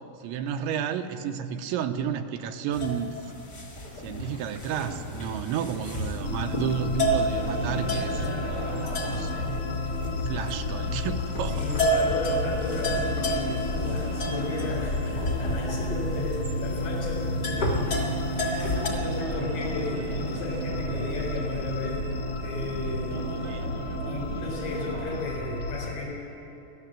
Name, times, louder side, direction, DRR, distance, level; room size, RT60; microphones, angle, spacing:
voice 1, 0.2-3.3 4.0-8.3 8.5-8.7 9.1-9.7 10.1-11.6 23.4-23.8, right 8 dB, 90° right, 6 dB, 3.3 m, -32 dB
sound 1, 2.7-18.9, equal, 30° left, 2.0 m, -32 dB
sound 2, 6.2-25.9, left 2 dB, 50° left, 2.3 m, -31 dB
sound 3, 7.4-25.2, right 3 dB, 70° right, 0.9 m, -39 dB
voice 2, 11.5-22.0 22.4-23.7 24.1-26.5, left 3 dB, 80° left, -4 dB, 6.5 m, -35 dB
23.0 x 16.0 x 7.5 m, 2.8 s
omnidirectional pair, 5.2 m